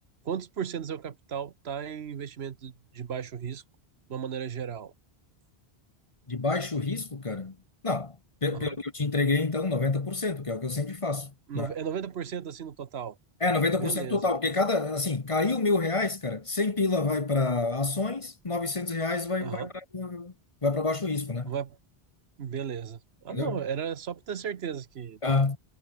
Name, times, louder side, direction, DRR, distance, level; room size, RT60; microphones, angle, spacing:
voice 1, 0.2-3.6 4.1-4.9 8.5-8.8 11.5-13.2 13.7-14.2 19.4-19.7 21.4-21.8 22.4-25.2, right 8 dB, 80° right, 1.2 m, -35 dB
voice 2, 6.3-7.5 7.8-8.2 8.4-11.7 13.4-19.7 19.9-20.3 20.6-21.5 23.3-23.6 25.2-25.6, left 3 dB, 30° left, 1.1 m, -28 dB
omnidirectional pair, 1.1 m